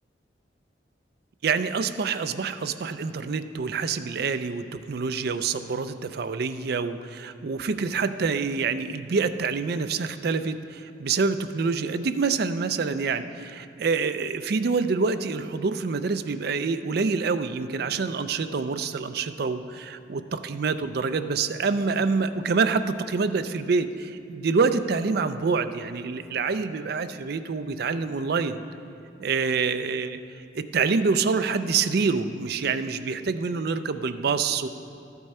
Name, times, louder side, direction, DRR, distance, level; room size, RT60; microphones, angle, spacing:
voice 1, 1.4-28.6 29.2-30.2 30.6-34.7, right 4 dB, 55° right, 10 dB, 0.4 m, -26 dB
13.0 x 8.1 x 4.3 m, 2.6 s
head